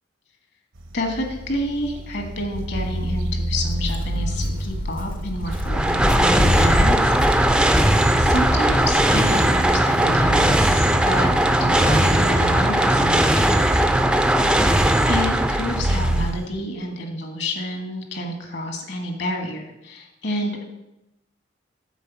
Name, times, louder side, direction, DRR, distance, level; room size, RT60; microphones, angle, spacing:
sound 1, 0.8-16.5, right 1 dB, 80° right, 0.9 m, -30 dB
voice 1, 0.9-7.9 8.2-11.3 11.6-14.0 15.1-20.7, left 1 dB, 60° left, 3 dB, 1.5 m, -29 dB
Walk footsteps, 3.5-10.6, left 1 dB, 45° left, 0.6 m, -27 dB
sound 2, 5.5-16.3, right 1 dB, 5° right, 0.3 m, -19 dB
8.3 x 4.1 x 7.0 m, 0.92 s
head